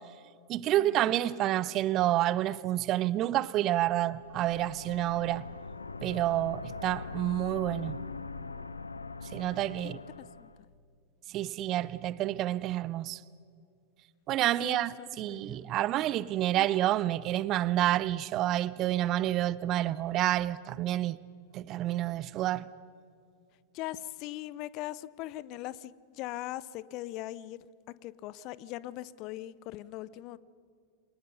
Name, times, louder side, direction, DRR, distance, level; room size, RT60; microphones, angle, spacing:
voice 1, 0.5-5.4 6.0-8.0 9.3-10.0 11.3-13.2 14.3-21.2 21.5-22.7, right 14 dB, 35° right, 0.6 m, -29 dB
sound 1, 4.1-10.6, left 4 dB, 80° left, 0.8 m, -42 dB
voice 2, 9.8-10.5 14.6-15.8 16.5-16.7 23.7-30.4, left 15 dB, 40° left, 0.8 m, -41 dB
28.0 x 26.0 x 5.4 m
figure-of-eight pair, 90°, 0 cm